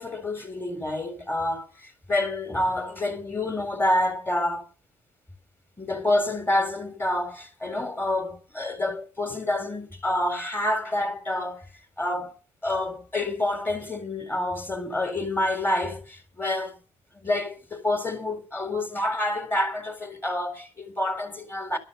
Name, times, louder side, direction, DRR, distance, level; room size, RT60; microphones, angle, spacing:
voice 1, 0.0-4.6 5.8-11.6 12.0-12.3 12.6-16.8 17.1-21.8, left 1 dB, 15° left, 3.8 m, -28 dB
12.5 x 12.5 x 5.6 m
cardioid pair, 120°, 12 cm